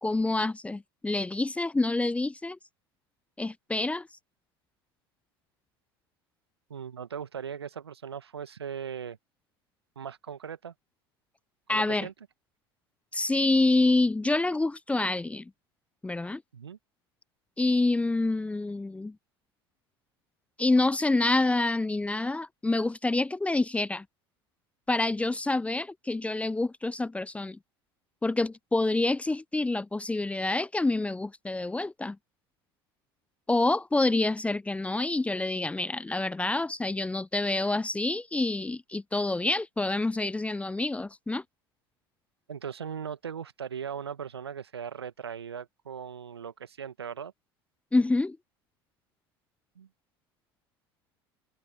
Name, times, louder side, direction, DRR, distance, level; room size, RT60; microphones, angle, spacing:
voice 1, 0.0-2.6 3.4-4.1 11.7-12.1 13.1-15.5 16.0-16.4 17.6-19.2 20.6-24.0 24.9-27.6 28.2-32.2 33.5-41.4 47.9-48.4, left 2 dB, 10° left, 0.5 m, -27 dB
voice 2, 6.7-9.2 10.0-10.7 11.7-12.1 16.5-16.8 42.5-47.3 49.8-49.9, right 7 dB, 85° right, 1.7 m, -39 dB
figure-of-eight pair, 70°, 13 cm